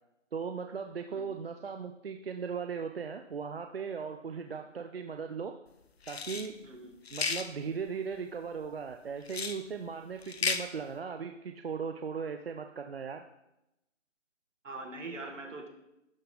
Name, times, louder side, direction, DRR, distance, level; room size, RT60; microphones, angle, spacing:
voice 1, 0.3-5.5 6.1-6.5 7.1-13.2, right 6 dB, 50° right, 5 dB, 0.5 m, -38 dB
sound 1, 6.0-6.5 7.1-7.5 9.3-9.6 10.2-10.6, left 5 dB, 55° left, 0.7 m, -33 dB
voice 2, 6.6-7.0 14.6-15.7, right 2 dB, 70° right, 4 dB, 1.7 m, -42 dB
11.5 x 3.9 x 3.8 m, 0.86 s
figure-of-eight pair, 155°, 38 cm